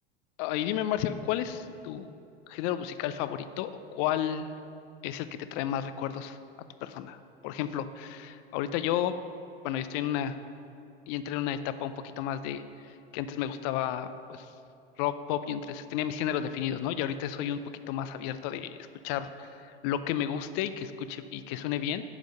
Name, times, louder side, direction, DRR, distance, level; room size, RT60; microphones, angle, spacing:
voice 1, 0.4-2.1 2.5-4.5 5.0-6.4 6.8-7.2 7.4-9.2 9.6-10.4 11.1-12.6 13.1-14.5 15.0-17.6 17.9-18.8 19.0-22.0, left 10 dB, 45° left, 12 dB, 0.5 m, -32 dB
9.8 x 5.2 x 6.4 m, 2.6 s
figure-of-eight pair, 85°, 30 cm